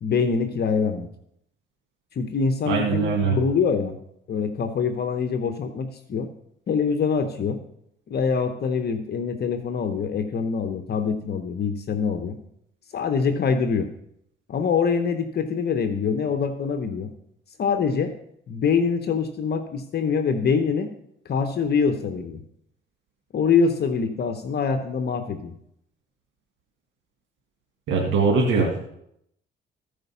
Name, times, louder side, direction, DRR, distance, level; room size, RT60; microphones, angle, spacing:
voice 1, 0.0-1.1 2.1-4.0 4.3-6.3 6.7-7.6 8.1-12.4 12.9-13.9 14.5-17.1 17.6-18.1 18.5-20.9 21.2-22.4 23.3-25.5, left 5 dB, 55° left, 8 dB, 0.9 m, -24 dB
voice 2, 2.7-3.4 27.9-28.9, right 4 dB, 75° right, 1 dB, 1.8 m, -22 dB
14.5 x 5.1 x 5.6 m, 0.75 s
cardioid pair, 90°, 20 cm